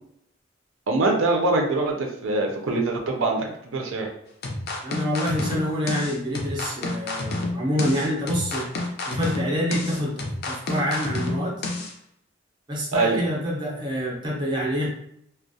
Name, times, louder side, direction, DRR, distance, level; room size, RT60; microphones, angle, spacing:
voice 1, 0.9-4.1 12.9-13.2, right 2 dB, 90° right, 2 dB, 0.5 m, -23 dB
sound 1, 4.4-11.9, left 2 dB, 50° left, 0.4 m, -29 dB
voice 2, 4.8-8.7 9.1-11.6 12.7-14.9, equal, 25° right, -3 dB, 0.5 m, -27 dB
2.3 x 2.0 x 2.6 m, 0.74 s
head